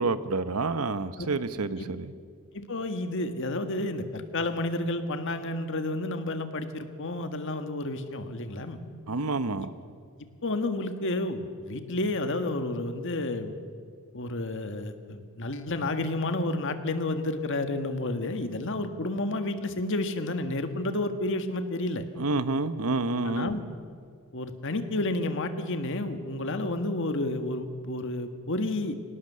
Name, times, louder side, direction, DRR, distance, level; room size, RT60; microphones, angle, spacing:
voice 1, 0.0-2.1 9.1-9.7 22.2-23.5, right 3 dB, 80° right, 12 dB, 1.0 m, -28 dB
voice 2, 2.5-8.8 9.6-9.7 10.4-13.5 14.1-22.0 23.2-23.6 24.3-28.9, left 2 dB, 60° left, 7 dB, 1.7 m, -31 dB
25.0 x 18.5 x 6.9 m, 2.1 s
head